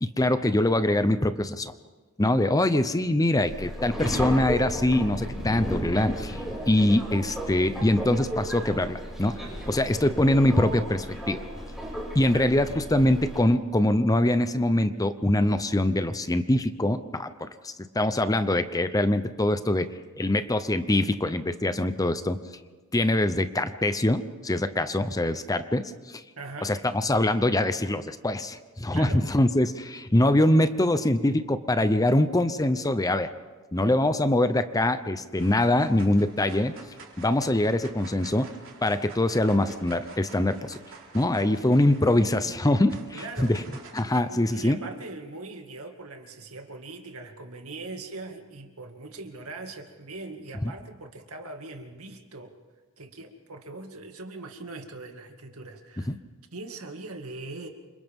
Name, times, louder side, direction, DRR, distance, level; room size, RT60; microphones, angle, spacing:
voice 1, 0.0-1.7 2.2-11.4 12.1-19.9 20.2-22.4 22.9-26.2 26.6-33.3 33.7-36.7 37.2-38.5 38.8-40.8 41.1-43.0 43.4-43.6 43.9-44.8 56.1-56.2, left 1 dB, 15° left, 11 dB, 0.7 m, -23 dB
Subway metro underground, 3.4-13.4, equal, ahead, 6.4 m, -34 dB
voice 2, 26.4-26.8 28.9-29.3 43.1-43.6 44.3-52.5 53.0-56.1 56.5-57.7, right 3 dB, 80° right, 4 dB, 2.2 m, -41 dB
sound 1, 34.7-35.0 35.3-44.2, right 4 dB, 65° right, 4.1 m, -49 dB
28.5 x 26.5 x 3.7 m, 1.3 s
head